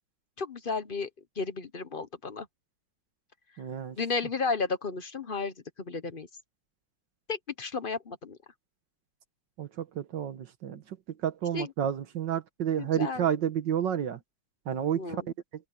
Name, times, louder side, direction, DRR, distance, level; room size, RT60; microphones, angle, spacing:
voice 1, 0.4-1.1 1.4-2.5 4.0-5.5 5.9-6.3 7.3-8.4 11.5-11.7 12.8-13.3 14.9-15.3, left 4 dB, 40° left, 0.9 m, -33 dB
voice 2, 3.6-4.0 9.6-11.0 11.2-14.2 14.7-15.2, right 9 dB, 80° right, 1.9 m, -30 dB
open air
omnidirectional pair, 1.9 m